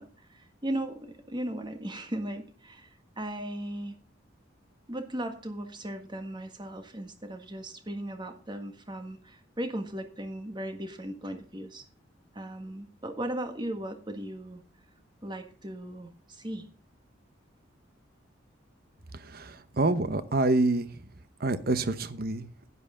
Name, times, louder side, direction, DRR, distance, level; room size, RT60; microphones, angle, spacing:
voice 1, 0.0-2.9 3.2-4.0 4.9-11.8 12.3-14.6 15.2-16.7, right 1 dB, 25° right, 7 dB, 1.6 m, -37 dB
voice 2, 19.1-21.1 21.4-22.5, right 2 dB, 50° right, 12 dB, 1.0 m, -27 dB
11.0 x 11.0 x 3.8 m, 0.41 s
head